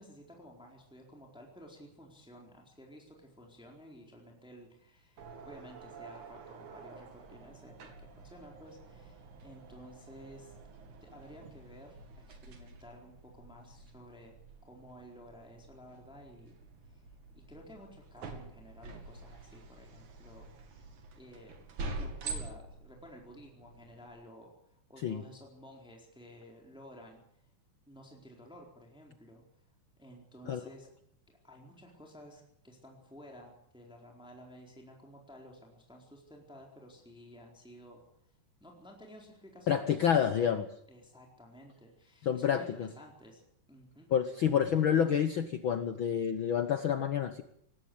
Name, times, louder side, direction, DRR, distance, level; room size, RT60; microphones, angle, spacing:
voice 1, 0.0-10.6 11.0-14.4 14.6-16.6 16.9-17.0 17.3-20.8 21.2-21.5 21.9-24.5 24.9-27.2 27.9-29.4 30.0-30.9 31.4-38.0 38.6-40.6 40.9-43.4 43.7-44.1, equal, ahead, 0 dB, 3.9 m, -53 dB
sound 1, 5.2-24.1, right 3 dB, 70° right, 3.9 m, -47 dB
voice 2, 39.7-40.6 42.2-42.9 44.1-47.4, left 8 dB, 70° left, 9 dB, 1.2 m, -28 dB
19.5 x 16.5 x 8.6 m, 0.71 s
omnidirectional pair, 3.6 m